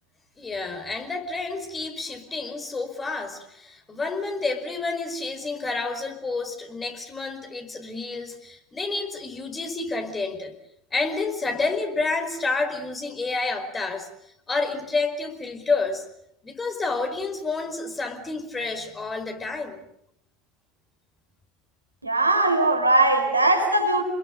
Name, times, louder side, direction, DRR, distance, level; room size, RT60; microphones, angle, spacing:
voice 1, 0.4-10.5 10.9-14.1 14.5-16.0 16.4-19.8, left 3 dB, 20° left, 5 dB, 5.0 m, -29 dB
voice 2, 22.0-24.0, right 2 dB, 90° right, 4 dB, 4.5 m, -20 dB
29.5 x 21.5 x 6.6 m, 0.76 s
figure-of-eight pair, 75°, 0 cm